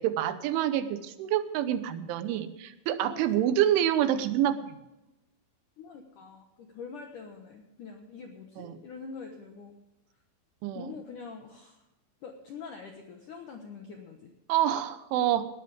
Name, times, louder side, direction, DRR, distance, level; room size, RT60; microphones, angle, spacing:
voice 1, 0.0-4.8 8.6-8.8 10.6-10.9 14.5-15.5, right 11 dB, 80° right, 11 dB, 3.3 m, -27 dB
voice 2, 5.8-9.8 10.7-11.8 12.2-14.3, left 5 dB, 75° left, 3 dB, 1.9 m, -44 dB
19.0 x 12.5 x 3.5 m, 0.94 s
omnidirectional pair, 5.6 m